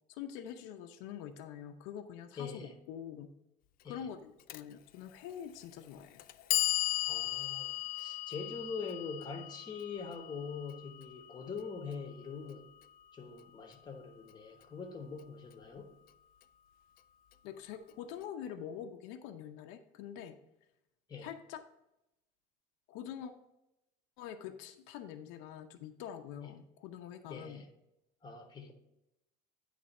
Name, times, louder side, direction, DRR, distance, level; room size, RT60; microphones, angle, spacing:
voice 1, 0.1-3.3 3.8-6.2 17.4-20.4 21.2-21.6 22.9-23.3 24.2-27.6, left 9 dB, 90° left, 5 dB, 0.7 m, -45 dB
voice 2, 2.4-2.8 3.8-4.1 7.0-12.7 13.1-15.9 21.1-21.3 26.4-26.6 27.3-27.7 28.2-28.7, left 5 dB, 20° left, 3 dB, 1.1 m, -43 dB
Clock, 4.5-4.6 5.6-5.7 6.2-12.2, left 15 dB, 50° left, 0.4 m, -37 dB
9.6 x 3.4 x 5.3 m, 0.89 s
cardioid pair, 145°, 20 cm